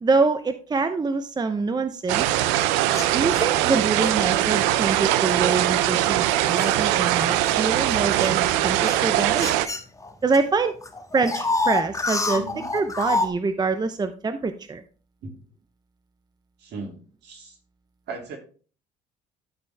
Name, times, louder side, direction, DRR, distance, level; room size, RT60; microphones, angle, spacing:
voice 1, 0.0-2.5 3.1-9.6 10.2-10.7 11.1-12.4 12.7-14.8, right 4 dB, 25° right, 10 dB, 0.7 m, -25 dB
sound 1, 2.1-9.7, right 13 dB, 90° right, 0.5 m, -21 dB
sound 2, 2.9-4.1 4.9-5.1 5.7-10.4 10.6-13.3, left 3 dB, 20° left, 1.5 m, -29 dB
voice 2, 12.3-12.7 15.2-15.4 16.6-17.6 18.1-18.4, right 3 dB, 65° right, 2 dB, 2.6 m, -38 dB
12.0 x 4.4 x 3.3 m, 0.40 s
supercardioid pair, 75°, 18 cm